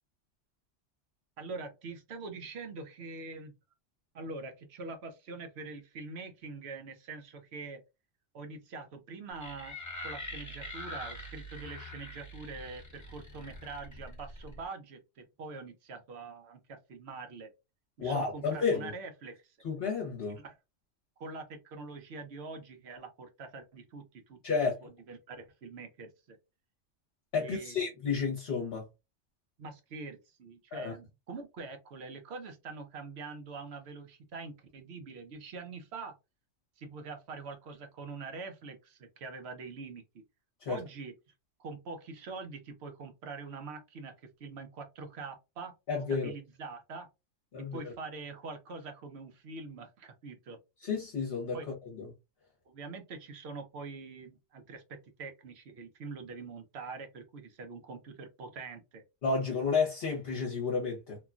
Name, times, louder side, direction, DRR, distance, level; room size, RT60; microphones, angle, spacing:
voice 1, 1.4-3.5 4.1-7.8 8.3-9.8 10.0-17.5 18.0-19.6 20.4-20.6 21.2-24.4 24.8-26.4 27.4-27.9 29.6-36.1 36.8-40.0 40.7-41.1 41.6-44.1 44.4-45.7 46.1-47.1 47.7-50.6 51.5-51.7 52.7-59.0, right 4 dB, 60° right, 0.9 m, -44 dB
sound 1, 9.4-14.6, left 1 dB, 20° left, 0.7 m, -44 dB
voice 2, 18.0-18.9 19.6-20.4 24.4-24.7 27.3-28.8 30.7-30.9 40.6-40.8 45.9-46.3 47.5-47.8 50.8-52.1 59.2-61.2, left 5 dB, 55° left, 1.0 m, -31 dB
3.0 x 2.2 x 2.4 m
omnidirectional pair, 1.3 m